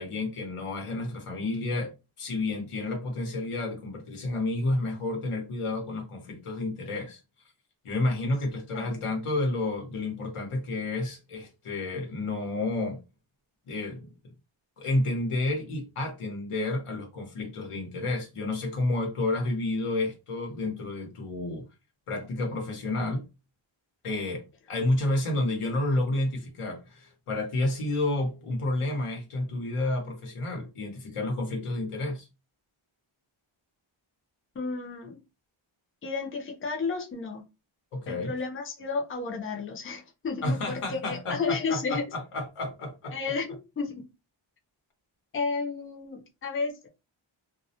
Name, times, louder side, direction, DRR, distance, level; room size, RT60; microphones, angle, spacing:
voice 1, 0.0-7.2 7.8-13.0 13.7-14.1 14.8-21.7 22.1-23.3 24.0-32.3 37.9-38.3 40.4-43.2, left 2 dB, 90° left, 0.9 m, -30 dB
voice 2, 34.5-35.2 36.0-37.4 38.1-42.0 43.1-44.0 45.3-46.9, left 4 dB, 25° left, 0.5 m, -32 dB
2.3 x 2.0 x 2.7 m
wide cardioid pair, 125°, 50 cm